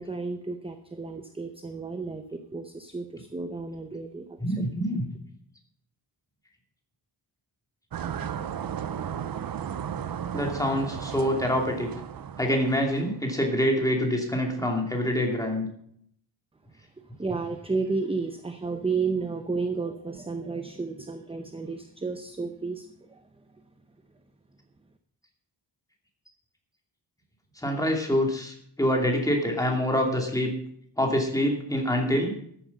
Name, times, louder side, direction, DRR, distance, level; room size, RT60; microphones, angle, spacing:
voice 1, 0.0-4.4 17.2-23.2, right 4 dB, 15° right, 8 dB, 0.7 m, -32 dB
voice 2, 4.4-5.1 10.3-11.9 12.4-15.7 27.6-30.5 31.0-32.4, equal, 10° left, 1 dB, 2.6 m, -26 dB
sound 1, 7.9-13.2, right 8 dB, 55° right, 0.7 m, -35 dB
13.0 x 10.0 x 5.4 m, 0.66 s
wide cardioid pair, 165°, 43 cm